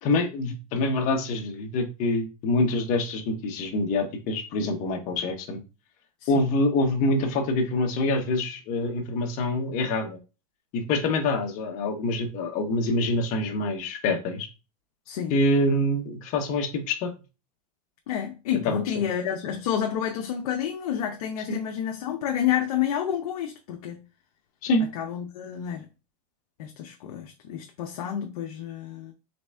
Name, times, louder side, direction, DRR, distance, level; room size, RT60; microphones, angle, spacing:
voice 1, 0.0-5.6 6.3-10.2 10.7-14.5 15.3-17.1 18.6-19.1 21.5-21.6 24.6-24.8, left 2 dB, 40° left, 1.1 m, -25 dB
voice 2, 15.1-15.4 18.1-24.0 24.9-25.9 26.6-29.1, left 9 dB, 70° left, 0.7 m, -29 dB
4.0 x 3.4 x 3.4 m
supercardioid pair, 140°, 20 cm